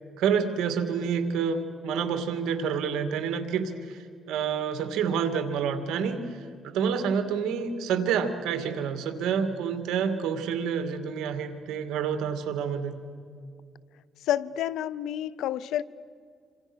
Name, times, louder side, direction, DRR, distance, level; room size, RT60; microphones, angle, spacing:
voice 1, 0.2-13.0, right 7 dB, 85° right, 7 dB, 2.4 m, -28 dB
voice 2, 14.3-15.8, left 11 dB, 85° left, 18 dB, 0.7 m, -29 dB
28.0 x 26.0 x 6.3 m, 2.2 s
cardioid pair, 90°, 0 cm